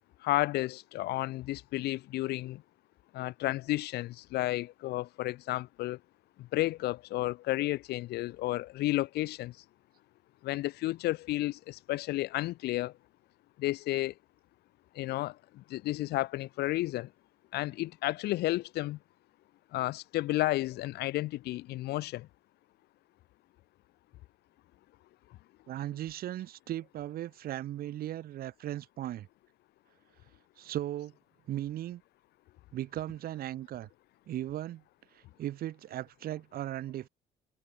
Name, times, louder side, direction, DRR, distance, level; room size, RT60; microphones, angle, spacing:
voice 1, 0.2-2.6 3.1-6.0 6.4-9.5 10.4-12.9 13.6-14.1 15.0-17.1 17.5-19.0 19.7-22.3, left 17 dB, 75° left, 0.7 m, -32 dB
voice 2, 25.7-29.3 30.6-31.1 31.5-32.0 32.7-33.9 34.3-34.8 35.1-37.1, right 13 dB, 60° right, 1.2 m, -37 dB
cardioid pair, 110°, 17 cm